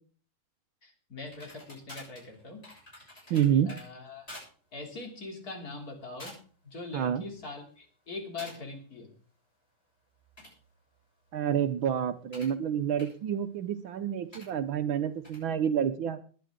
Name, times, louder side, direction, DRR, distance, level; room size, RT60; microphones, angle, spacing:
voice 1, 0.8-2.6 2.9-3.4 3.7-4.3 4.7-6.4 6.6-9.1, left 3 dB, 45° left, 2 dB, 3.5 m, -42 dB
sound 1, 1.3-3.8 4.3-4.5 4.9-5.1 5.7-5.9 6.2-6.6 7.0-7.5 8.4-8.6 10.1-12.6 13.0-13.1 14.3-14.5 15.2-15.4, left 1 dB, 25° left, 8.3 m, -49 dB
voice 2, 3.3-3.7 6.9-7.2 11.3-16.2, right 9 dB, 70° right, 12 dB, 1.6 m, -28 dB
21.0 x 9.4 x 3.8 m, 0.42 s
omnidirectional pair, 2.4 m